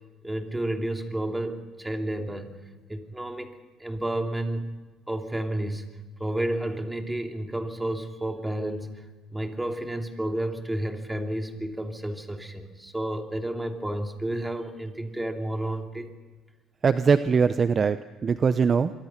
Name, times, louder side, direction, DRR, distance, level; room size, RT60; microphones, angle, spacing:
voice 1, 0.2-2.6 2.9-3.5 3.8-4.8 5.1-5.9 6.2-9.0 9.3-16.1, right 1 dB, 10° right, 4 dB, 2.9 m, -31 dB
voice 2, 16.8-18.9, right 5 dB, 40° right, 12 dB, 0.7 m, -22 dB
26.0 x 23.5 x 5.9 m, 1.3 s
cardioid pair, 90°, 0 cm